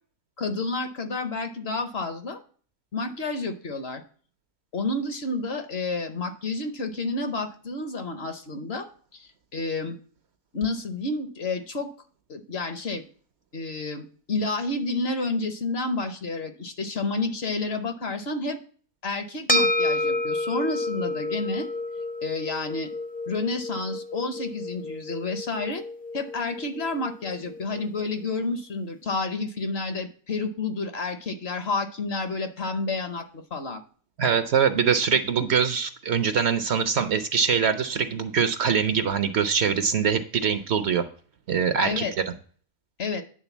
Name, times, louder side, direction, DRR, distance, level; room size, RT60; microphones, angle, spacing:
voice 1, 0.4-2.4 2.9-4.0 4.7-10.0 10.5-11.9 12.3-13.0 13.5-18.6 19.0-21.7 22.2-22.9 23.3-25.8 26.1-33.8 41.8-42.1 43.0-43.2, left 3 dB, 55° left, 8 dB, 1.0 m, -30 dB
sound 1, 19.5-28.1, left 1 dB, 10° left, 0.5 m, -30 dB
voice 2, 34.2-41.0 41.5-42.0, right 6 dB, 60° right, 10 dB, 0.8 m, -23 dB
9.9 x 3.7 x 7.1 m, 0.44 s
omnidirectional pair, 1.4 m